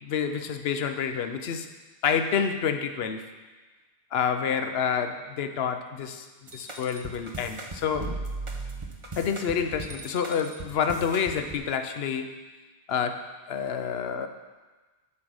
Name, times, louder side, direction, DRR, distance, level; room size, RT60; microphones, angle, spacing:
voice 1, 0.0-1.7 2.0-3.2 4.1-6.3 6.5-8.1 9.2-12.4 12.9-14.3, left 7 dB, 70° left, 8 dB, 0.9 m, -28 dB
sound 1, 6.5-11.6, right 2 dB, 30° right, 0.9 m, -37 dB
8.6 x 5.5 x 6.3 m, 1.3 s
omnidirectional pair, 1.1 m